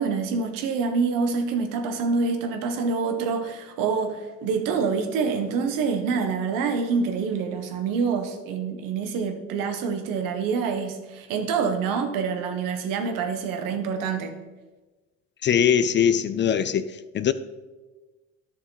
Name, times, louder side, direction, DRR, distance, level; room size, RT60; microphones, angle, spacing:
voice 1, 0.0-14.3, right 5 dB, 75° right, 6 dB, 1.4 m, -26 dB
voice 2, 15.4-16.9 17.1-17.3, left 8 dB, 35° left, 13 dB, 0.4 m, -21 dB
11.5 x 6.4 x 4.1 m, 1.2 s
supercardioid pair, 90°, 33 cm